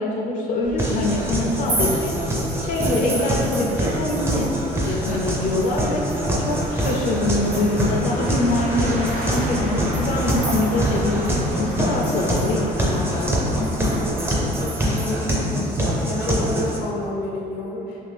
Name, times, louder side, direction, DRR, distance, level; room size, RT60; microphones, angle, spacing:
voice 1, 0.0-2.2 2.6-4.5 4.7-13.6, left 2 dB, 50° left, -2 dB, 0.4 m, -24 dB
sound 1, 0.6-14.6, right 1 dB, 50° right, 0.7 m, -33 dB
sound 2, 0.8-16.8, equal, 15° right, 0.5 m, -25 dB
sound 3, 1.5-4.6 4.8-8.0 8.5-8.6 9.1-11.0 11.2-11.3 11.7-15.1, right 2 dB, 75° right, 0.9 m, -35 dB
voice 2, 13.9-14.3 14.6-15.3 16.0-18.0, left 1 dB, 90° left, -4 dB, 0.7 m, -29 dB
2.7 x 2.5 x 3.3 m, 2.9 s
cardioid pair, 110°, 17 cm